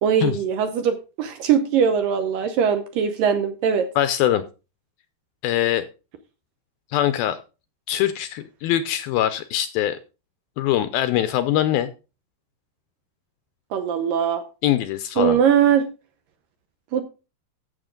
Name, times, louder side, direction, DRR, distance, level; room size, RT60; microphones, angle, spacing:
voice 1, 0.0-3.9 13.7-14.4 15.2-15.9 16.9-17.0, right 7 dB, 75° right, 8 dB, 2.2 m, -21 dB
voice 2, 4.0-4.4 5.4-5.8 6.9-7.4 7.9-10.0 10.6-11.9 14.6-15.4, left 12 dB, 80° left, 11 dB, 2.2 m, -22 dB
14.0 x 7.0 x 3.8 m, 0.31 s
omnidirectional pair, 4.8 m